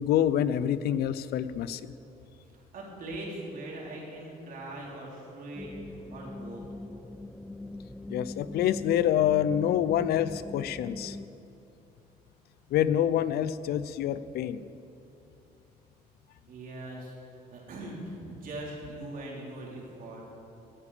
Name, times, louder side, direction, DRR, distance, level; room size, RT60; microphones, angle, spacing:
voice 1, 0.0-1.9 8.1-11.2 12.7-14.6, left 10 dB, 70° left, 15 dB, 0.6 m, -27 dB
voice 2, 2.5-6.6 16.5-17.1 17.5-20.2, right 1 dB, 55° right, -3 dB, 3.8 m, -41 dB
sound 1, 5.5-11.3, left 2 dB, 5° left, 0.4 m, -41 dB
17.0 x 10.0 x 5.0 m, 2.7 s
cardioid pair, 110°, 17 cm